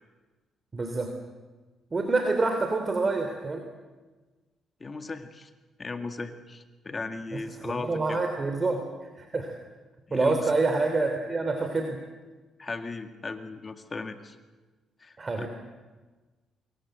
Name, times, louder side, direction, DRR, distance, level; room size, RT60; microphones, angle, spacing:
voice 1, 0.7-1.1 1.9-3.6 7.3-7.4 7.6-8.8 9.2-9.5 10.1-12.0 15.2-15.5, right 3 dB, 30° right, 5 dB, 3.3 m, -27 dB
voice 2, 4.8-5.5 5.8-8.2 10.1-10.5 12.6-14.4 15.0-15.5, left 3 dB, 30° left, 7 dB, 1.9 m, -37 dB
26.0 x 22.5 x 8.0 m, 1.3 s
cardioid pair, 90°, 0 cm